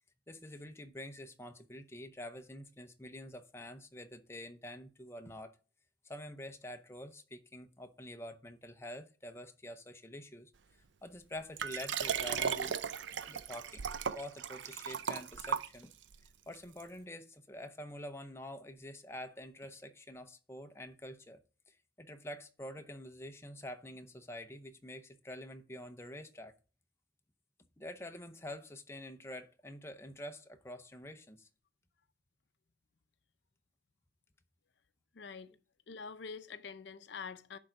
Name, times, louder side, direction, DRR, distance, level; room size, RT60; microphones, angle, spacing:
voice 1, 0.3-5.6 6.0-10.5 11.0-12.8 13.3-13.9 14.1-15.9 16.5-21.4 21.7-26.5 27.8-31.5, left 1 dB, 15° left, 0.7 m, -47 dB
Liquid, 11.6-16.1 16.8-16.9, right 7 dB, 75° right, 0.5 m, -36 dB
voice 2, 35.1-35.5 35.9-37.6, left 5 dB, 65° left, 0.6 m, -45 dB
10.5 x 3.9 x 5.7 m
head